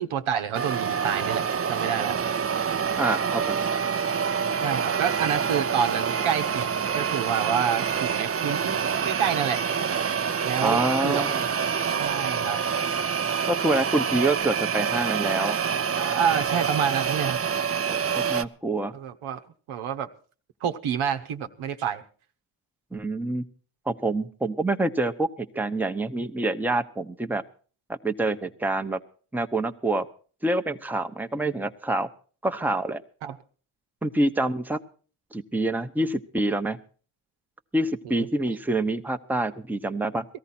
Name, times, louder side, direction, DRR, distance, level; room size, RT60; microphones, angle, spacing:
voice 1, 0.0-2.2 4.6-9.6 10.4-11.2 12.0-12.6 16.0-17.4 18.9-19.4 19.7-20.1 20.6-22.0 33.2-33.4 38.0-38.3, right 8 dB, 85° right, 8 dB, 1.1 m, -28 dB
sound 1, 0.5-18.4, right 7 dB, 30° right, 0.6 m, -26 dB
voice 2, 3.0-3.6 10.6-11.4 13.5-15.6 17.9-18.9 22.9-23.4 23.9-25.3 25.5-27.4 28.0-29.0 29.3-30.1 30.4-32.1 32.4-33.0 34.0-34.8 35.3-36.8 37.7-40.3, right 2 dB, 5° right, 8 dB, 0.8 m, -26 dB
18.0 x 14.0 x 4.3 m, 0.41 s
cardioid pair, 65°, 48 cm